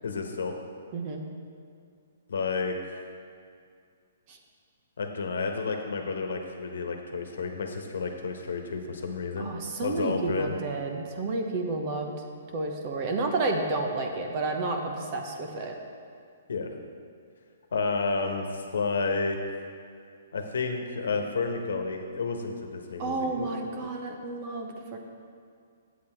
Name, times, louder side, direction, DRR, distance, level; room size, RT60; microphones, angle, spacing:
voice 1, 0.0-0.5 2.3-3.0 5.0-9.5 9.8-10.6 16.5-16.7 17.7-19.4 20.3-23.5 23.8-23.9, left 4 dB, 85° left, 4 dB, 1.1 m, -31 dB
voice 2, 0.9-1.2 4.3-4.4 9.4-12.2 12.5-15.7 23.0-25.0, right 3 dB, 35° right, 3 dB, 1.0 m, -31 dB
8.2 x 7.9 x 4.5 m, 2.2 s
hypercardioid pair, 155°, 0 cm